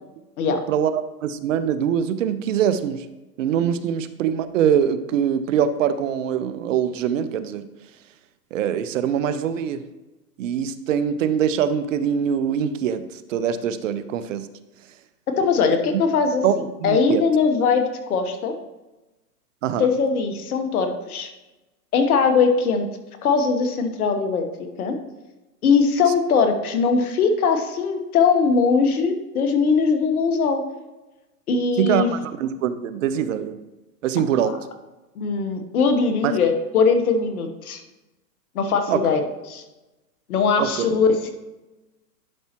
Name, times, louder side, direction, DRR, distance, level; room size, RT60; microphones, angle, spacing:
voice 1, 0.4-3.0 3.4-7.7 8.5-9.8 10.4-14.5 15.9-16.0 16.4-17.2 19.6-19.9 31.8-33.6 34.0-34.6 36.2-36.3 38.9-39.0 40.6-40.7, right 8 dB, 50° right, 12 dB, 0.7 m, -23 dB
voice 2, 15.4-16.4 16.8-18.5 19.8-21.3 21.9-22.9 23.2-24.4 24.8-25.0 25.6-30.6 31.5-32.1 34.4-34.6 35.1-37.8 38.5-39.2 39.5-39.6 40.3-41.3, left 5 dB, 65° left, 6 dB, 1.3 m, -20 dB
11.0 x 5.5 x 3.0 m, 1.1 s
hypercardioid pair, 140°, 48 cm